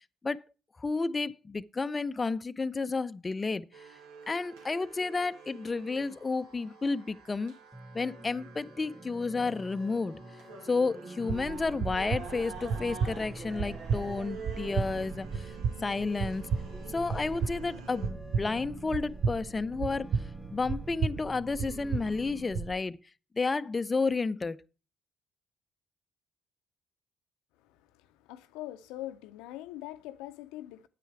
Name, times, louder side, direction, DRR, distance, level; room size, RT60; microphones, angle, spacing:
voice 1, 0.8-3.9 4.3-7.5 7.9-10.2 10.7-15.5 15.8-16.5 16.9-20.1 20.5-23.0 23.4-24.6, left 4 dB, 30° left, 0.5 m, -31 dB
sound 1, 3.7-18.1, right 4 dB, 80° right, 2.1 m, -47 dB
sound 2, 7.7-22.5, right 1 dB, 10° right, 2.2 m, -48 dB
sound 3, 11.3-22.7, right 5 dB, 55° right, 0.7 m, -34 dB
voice 2, 27.6-30.9, left 14 dB, 80° left, 0.6 m, -43 dB
9.2 x 8.4 x 4.7 m
hypercardioid pair, 50°, 0 cm